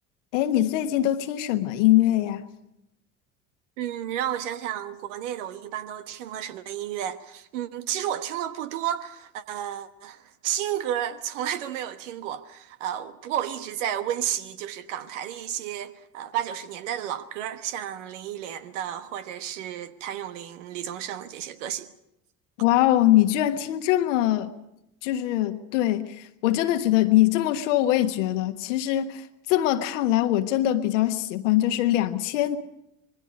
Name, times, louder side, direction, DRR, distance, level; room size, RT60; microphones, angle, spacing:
voice 1, 0.3-2.5 22.6-24.5 25.0-32.6, left 14 dB, 65° left, 1.4 m, -22 dB
voice 2, 3.8-10.2 10.4-21.9, right 10 dB, 65° right, 1.3 m, -32 dB
26.5 x 21.0 x 5.3 m
figure-of-eight pair, 60°, 39 cm